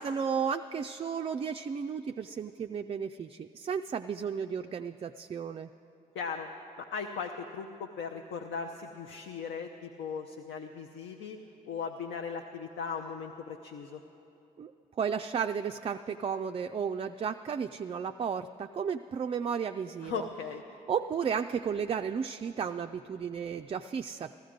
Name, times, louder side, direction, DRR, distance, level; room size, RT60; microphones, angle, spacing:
voice 1, 0.0-5.7 14.6-14.7 15.0-20.3 20.9-24.4, right 7 dB, 30° right, 8 dB, 0.3 m, -33 dB
voice 2, 6.1-6.5 6.9-11.4 11.7-14.0 20.0-20.6, left 6 dB, 65° left, 4 dB, 0.7 m, -38 dB
14.0 x 14.0 x 5.0 m, 2.9 s
hypercardioid pair, 45°, 20 cm